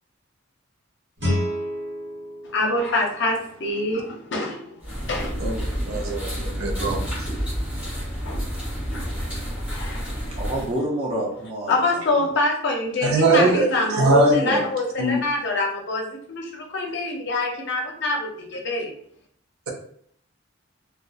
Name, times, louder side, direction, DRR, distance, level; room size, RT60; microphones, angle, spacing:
Guitar, 1.2-3.9, left 1 dB, 55° right, 1.0 m, -30 dB
voice 1, 2.4-5.4 8.2-8.4 8.9-9.1 9.4-10.0 11.7-18.9, left 2 dB, 55° left, 1 dB, 0.5 m, -26 dB
sound 1, 4.8-10.8, equal, 5° right, 1.0 m, -29 dB
voice 2, 5.9-7.3 13.0-14.6 15.0-15.2, right 2 dB, 85° right, 0 dB, 0.6 m, -21 dB
voice 3, 10.3-12.3 13.0-13.6, right 1 dB, 30° right, -2 dB, 0.4 m, -29 dB
2.7 x 2.1 x 2.2 m, 0.63 s
head